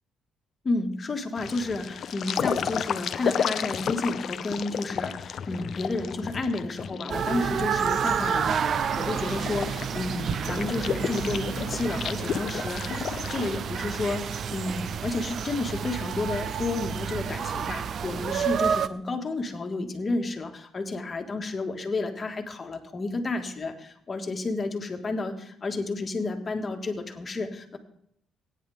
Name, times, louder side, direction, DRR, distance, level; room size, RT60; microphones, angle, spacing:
voice 1, 0.6-13.0 13.3-27.8, left 3 dB, 35° left, 4 dB, 1.9 m, -31 dB
sound 1, 1.4-13.5, left 8 dB, 60° left, 0.6 m, -33 dB
sound 2, 7.1-18.9, right 7 dB, 55° right, 0.5 m, -30 dB
17.5 x 9.9 x 3.6 m, 0.72 s
cardioid pair, 95°, 0 cm